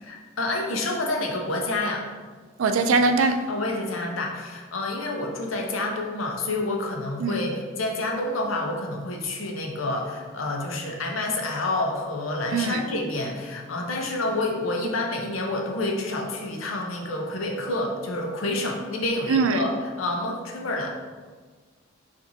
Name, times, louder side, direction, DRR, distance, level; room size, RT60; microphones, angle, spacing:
voice 1, 0.0-2.1 3.5-20.9, left 2 dB, 85° left, 1 dB, 0.7 m, -28 dB
voice 2, 2.6-3.4 7.2-7.4 12.5-12.8 19.3-19.6, right 4 dB, 80° right, 7 dB, 0.4 m, -21 dB
5.7 x 2.6 x 2.6 m, 1.5 s
head